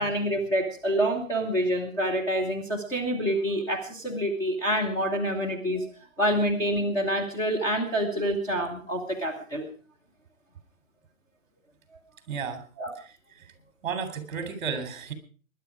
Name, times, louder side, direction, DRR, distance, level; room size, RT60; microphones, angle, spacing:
voice 1, 0.0-5.9 6.2-9.7 12.8-12.9, equal, 5° left, -2 dB, 1.3 m, -27 dB
voice 2, 12.3-12.7 13.0-13.5 13.8-15.1, right 6 dB, 35° right, 9 dB, 3.3 m, -33 dB
20.5 x 11.0 x 4.8 m, 0.40 s
hypercardioid pair, 160°, 41 cm